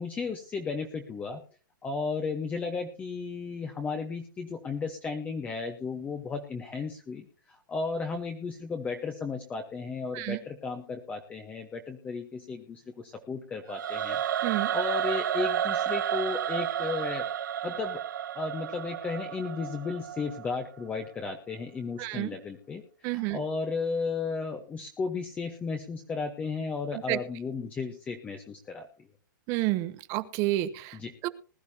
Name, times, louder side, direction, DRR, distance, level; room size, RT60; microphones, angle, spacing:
voice 1, 0.0-1.4 1.8-14.2 14.7-17.2 17.6-18.0 18.3-29.1 30.9-31.1, left 4 dB, 10° left, 4 dB, 1.0 m, -34 dB
Singing / Musical instrument, 13.7-20.8, right 10 dB, 65° right, 0.9 m, -31 dB
voice 2, 22.0-22.4 23.0-23.4 26.9-27.2 29.5-31.0 31.2-31.3, right 17 dB, 30° right, 15 dB, 0.8 m, -30 dB
20.5 x 12.0 x 2.8 m, 0.35 s
hypercardioid pair, 155°, 11 cm